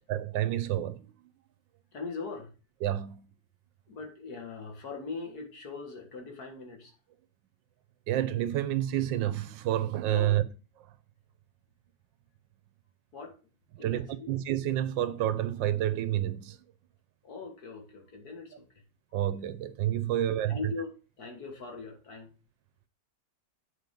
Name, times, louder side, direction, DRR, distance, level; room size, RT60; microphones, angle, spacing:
voice 1, 0.1-1.1 2.8-3.2 8.1-10.4 13.7-16.6 19.1-20.7, right 12 dB, 85° right, 1.4 m, -29 dB
voice 2, 1.9-2.5 3.9-6.9 10.1-10.3 13.1-13.3 13.8-14.3 17.2-18.6 20.1-20.2 20.5-20.9 21.2-22.3, left 4 dB, 55° left, 2.2 m, -40 dB
8.3 x 4.4 x 5.3 m
omnidirectional pair, 2.0 m